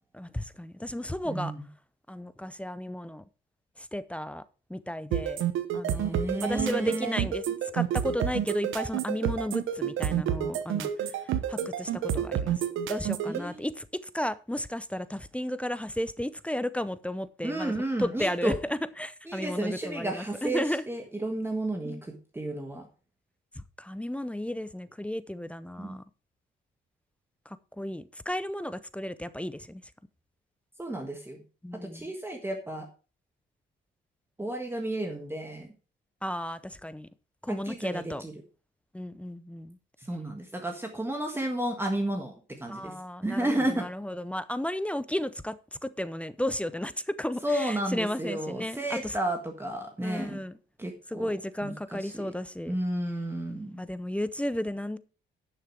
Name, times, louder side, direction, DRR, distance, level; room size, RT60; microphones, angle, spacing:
voice 1, 0.1-1.5 2.1-3.2 3.8-4.4 4.7-5.4 5.7-7.4 7.7-10.9 11.5-12.6 12.9-13.9 14.1-17.7 18.0-20.8 21.8-22.0 23.6-26.0 27.5-29.8 31.6-32.1 36.2-37.1 37.4-38.2 38.9-39.8 42.7-45.6 45.8-49.1 50.0-50.5 51.1-52.7 53.8-55.0, left 1 dB, 5° left, 0.6 m, -33 dB
voice 2, 1.2-1.7 5.9-7.2 13.3-13.6 17.4-18.6 19.2-22.9 25.8-26.0 30.8-31.4 31.8-32.9 34.4-35.7 37.5-38.3 40.0-42.3 42.6-42.9 43.2-43.9 47.4-50.4 50.8-51.3 51.6-52.3 52.7-53.8, right 1 dB, 10° right, 1.6 m, -32 dB
sound 1, 5.1-13.4, right 10 dB, 80° right, 1.1 m, -29 dB
11.0 x 6.6 x 4.7 m
cardioid pair, 90°, 20 cm